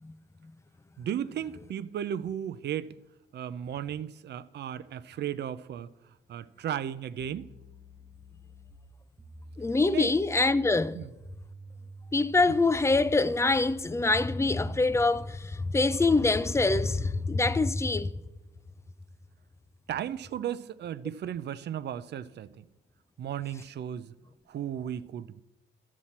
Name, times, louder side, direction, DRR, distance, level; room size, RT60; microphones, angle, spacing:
voice 1, 1.0-2.9 3.3-5.9 6.3-7.5 9.9-10.1 10.9-11.1 19.9-22.6 23.2-24.1 24.5-25.4, right 10 dB, 60° right, 0.5 m, -35 dB
sound 1, 7.2-14.7, right 2 dB, 10° right, 0.7 m, -49 dB
voice 2, 9.6-11.0 12.1-18.1, left 3 dB, 15° left, 0.4 m, -25 dB
12.0 x 7.3 x 4.3 m
cardioid pair, 90°, 20 cm